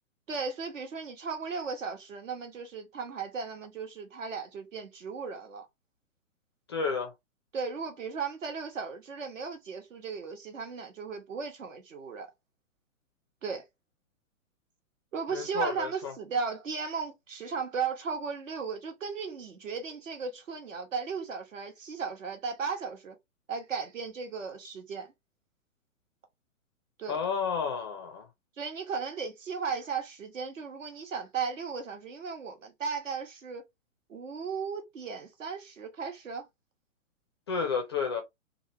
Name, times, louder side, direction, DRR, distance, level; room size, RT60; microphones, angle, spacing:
voice 1, 0.3-5.7 7.5-12.3 13.4-13.7 15.1-23.2 23.5-25.1 27.0-27.2 28.6-33.6 34.1-36.4, right 5 dB, 65° right, 1.2 m, -36 dB
voice 2, 6.7-7.1 15.3-16.1 27.1-28.3 37.5-38.2, left 5 dB, 20° left, 0.4 m, -31 dB
3.0 x 2.5 x 2.9 m
figure-of-eight pair, 120°, 41 cm